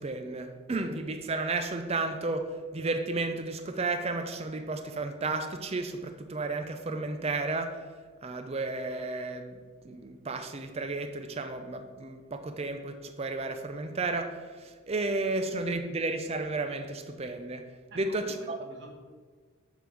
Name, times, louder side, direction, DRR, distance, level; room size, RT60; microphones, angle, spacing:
voice 1, 0.0-7.9 8.2-9.6 9.8-18.6, right 3 dB, 25° right, 0.4 m, -33 dB
voice 2, 17.9-18.9, right 1 dB, 50° right, 1.4 m, -48 dB
8.3 x 3.8 x 5.9 m
head